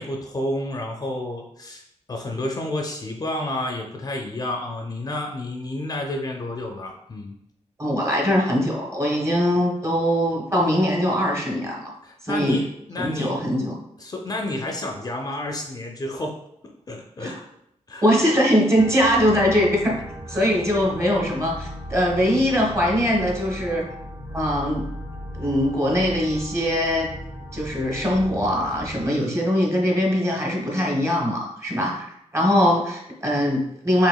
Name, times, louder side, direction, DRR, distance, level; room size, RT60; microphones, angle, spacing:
voice 1, 0.0-1.8 2.1-7.3 12.0-12.6 12.9-13.3 14.0-16.4 16.9-17.5 17.9-18.1 20.3-20.5, left 1 dB, 30° left, 2 dB, 0.4 m, -30 dB
voice 2, 7.8-11.9 12.2-12.6 13.0-13.7 17.2-17.3 18.0-20.0 20.3-23.9 24.3-24.8 25.4-27.1 27.5-32.1 32.3-34.1, equal, 25° right, -2 dB, 1.1 m, -21 dB
sound 1, 18.8-29.1, equal, 40° right, 1.3 m, -37 dB
4.8 x 3.3 x 2.3 m, 0.78 s
wide cardioid pair, 125°, 12 cm